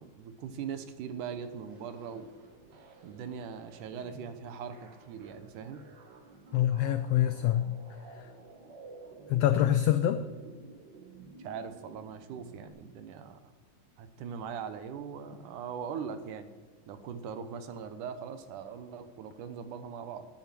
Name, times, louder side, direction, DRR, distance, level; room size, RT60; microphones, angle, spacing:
voice 1, 0.0-2.3 3.0-5.8 11.4-13.5 14.0-16.5 16.9-20.3, right 7 dB, 90° right, 9 dB, 2.5 m, -41 dB
sound 1, 1.1-12.7, right 3 dB, 50° right, 1.4 m, -52 dB
voice 2, 6.5-7.8 8.1-8.3 9.3-10.2, left 11 dB, 85° left, 10 dB, 1.4 m, -26 dB
9.5 x 9.4 x 7.6 m, 1.3 s
omnidirectional pair, 3.5 m